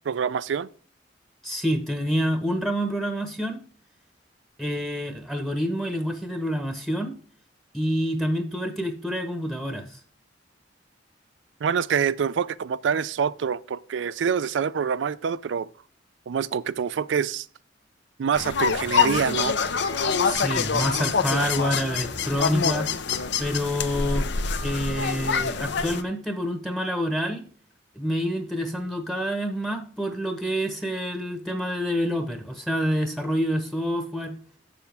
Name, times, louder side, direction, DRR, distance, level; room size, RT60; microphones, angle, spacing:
voice 1, 0.1-0.7 11.6-15.7 16.3-17.5 18.2-19.6, right 7 dB, 80° right, 0.4 m, -26 dB
voice 2, 1.4-3.6 4.6-7.1 7.7-9.8 20.2-22.9 23.4-24.3 24.6-27.4 28.0-34.3, equal, ahead, 0.9 m, -27 dB
sound 1, 18.3-26.0, left 6 dB, 70° left, 0.7 m, -25 dB
6.9 x 6.9 x 3.4 m
head